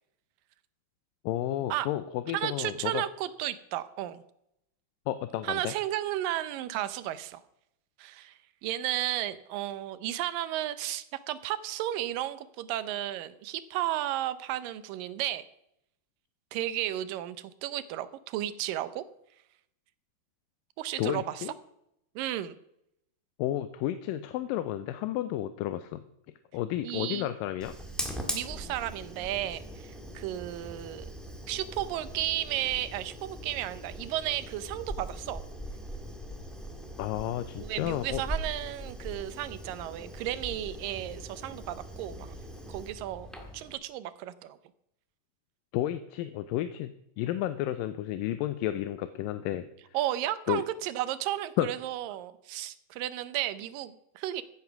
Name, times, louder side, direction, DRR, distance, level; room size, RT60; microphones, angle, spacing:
voice 1, 1.2-3.0 5.1-5.7 21.0-21.5 23.4-26.1 26.5-27.7 37.0-38.2 45.7-49.7 50.5-50.6 51.6-51.7, left 13 dB, 85° left, 11 dB, 2.4 m, -32 dB
voice 2, 2.3-4.2 5.4-7.4 8.0-15.4 16.5-19.0 20.8-21.5 22.2-22.6 26.8-27.3 28.3-31.1 31.5-35.4 37.6-42.4 42.7-44.6 49.9-54.4, right 13 dB, 85° right, 14 dB, 2.5 m, -33 dB
Fire, 27.6-43.7, equal, ahead, 0.8 m, -41 dB
15.5 x 9.0 x 5.9 m, 0.79 s
omnidirectional pair, 3.9 m